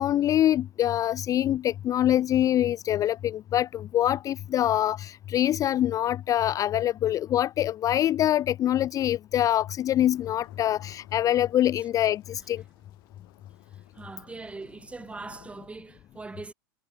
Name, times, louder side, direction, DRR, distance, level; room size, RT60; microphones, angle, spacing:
voice 1, 0.0-12.6, left 12 dB, 25° left, 0.4 m, -25 dB
sound 1, 10.0-15.7, left 22 dB, 60° left, 2.9 m, -56 dB
voice 2, 13.9-16.5, right 3 dB, 10° right, 1.1 m, -41 dB
hypercardioid pair, 120°, 13 cm